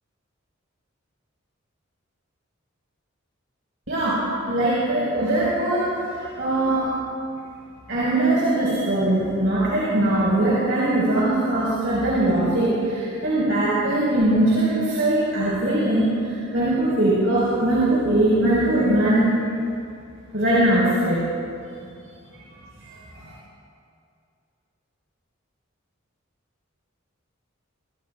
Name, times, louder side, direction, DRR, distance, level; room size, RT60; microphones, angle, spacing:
voice 1, 4.5-6.8 7.9-19.4 20.3-21.2 22.9-23.0, right 1 dB, 70° right, -9 dB, 5.2 m, -21 dB
25.5 x 22.5 x 2.5 m, 2.4 s
head